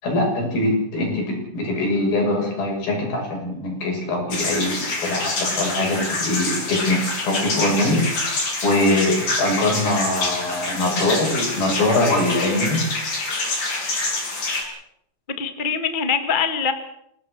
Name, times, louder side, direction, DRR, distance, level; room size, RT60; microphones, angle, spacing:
voice 1, 0.0-8.0 8.6-12.8, left 2 dB, 70° left, 0 dB, 8.6 m, -22 dB
sound 1, 4.3-14.6, left 2 dB, 50° left, 6.7 m, -26 dB
voice 2, 15.4-16.7, left 5 dB, 30° left, 8 dB, 0.8 m, -23 dB
26.5 x 18.0 x 6.6 m, 0.74 s
omnidirectional pair, 4.4 m